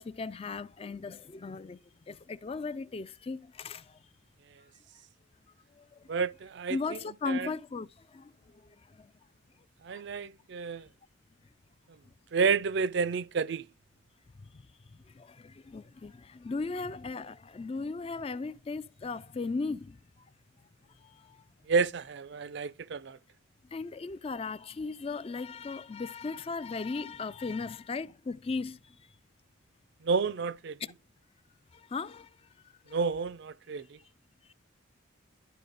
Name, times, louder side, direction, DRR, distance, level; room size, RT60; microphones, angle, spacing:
voice 1, 0.0-1.8 2.1-3.8 6.7-7.9 8.1-8.3 9.9-10.0 15.2-20.0 23.7-28.8 31.9-32.3, left 4 dB, 30° left, 0.3 m, -36 dB
voice 2, 6.1-6.8 7.3-7.5 9.8-10.9 12.3-13.7 21.7-23.2 30.0-30.8 32.9-33.8, right 5 dB, 55° right, 0.4 m, -30 dB
11.5 x 4.1 x 3.9 m
head